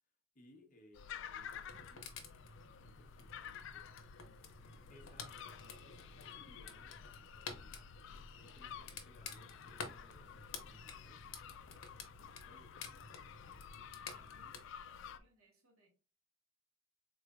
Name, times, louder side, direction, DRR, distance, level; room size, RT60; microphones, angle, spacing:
voice 1, 0.3-2.1 2.8-3.9 4.9-5.4 5.8-7.8 8.3-11.3 12.3-13.2, left 1 dB, 40° left, 0.9 m, -65 dB
sound 1, 0.9-15.2, left 7 dB, 60° left, 0.3 m, -52 dB
sound 2, 1.4-14.6, left 5 dB, 85° left, 0.8 m, -52 dB
voice 2, 13.9-15.9, equal, 90° right, 1.3 m, -70 dB
3.9 x 3.2 x 2.4 m
head